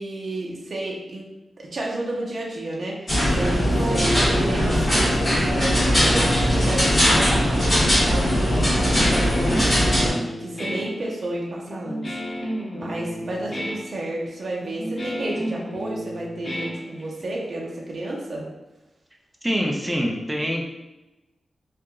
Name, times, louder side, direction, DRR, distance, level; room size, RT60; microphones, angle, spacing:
voice 1, 0.0-9.7 10.4-12.2 12.7-18.5, right 1 dB, 55° right, -3 dB, 0.6 m, -31 dB
sound 1, 3.1-10.1, equal, 35° left, 1.4 m, -20 dB
voice 2, 3.8-4.1 19.4-20.7, equal, 10° right, -1 dB, 0.4 m, -26 dB
Guitar, 8.7-17.4, equal, 50° left, 0.7 m, -32 dB
2.8 x 2.4 x 2.3 m, 1.0 s
wide cardioid pair, 105°, 0 cm